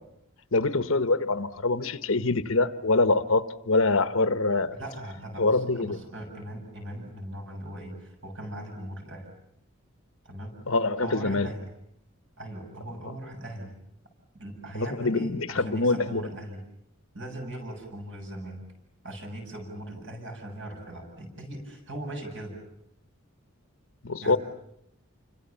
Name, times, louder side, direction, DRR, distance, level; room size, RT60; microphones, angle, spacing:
voice 1, 0.5-4.7 5.4-6.0 10.7-11.5 14.7-16.2 24.0-24.4, left 3 dB, 65° left, 1.2 m, -24 dB
voice 2, 4.8-9.3 10.2-10.5 11.0-11.7 12.4-13.7 14.3-16.6 17.1-18.6 19.0-22.5 24.2-24.4, right 1 dB, 55° right, 7.8 m, -39 dB
29.0 x 25.5 x 7.1 m
head